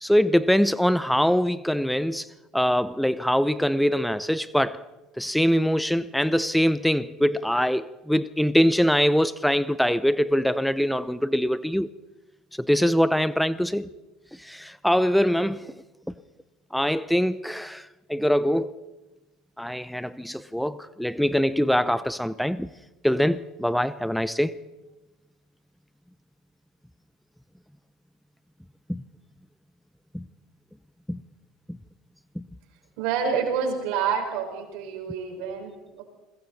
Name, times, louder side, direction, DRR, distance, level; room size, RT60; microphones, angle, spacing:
voice 1, 0.0-2.3 2.5-4.8 5.2-11.9 12.6-13.9 14.4-15.7 16.7-18.7 19.6-22.7 23.0-24.6 28.9-29.0 30.1-30.2 31.1-31.2 31.7-31.8 32.4-32.5, equal, ahead, 16 dB, 0.7 m, -23 dB
voice 2, 33.0-36.0, right 6 dB, 70° right, 3 dB, 5.5 m, -28 dB
29.0 x 21.5 x 4.2 m, 1.1 s
hypercardioid pair, 80°, 0 cm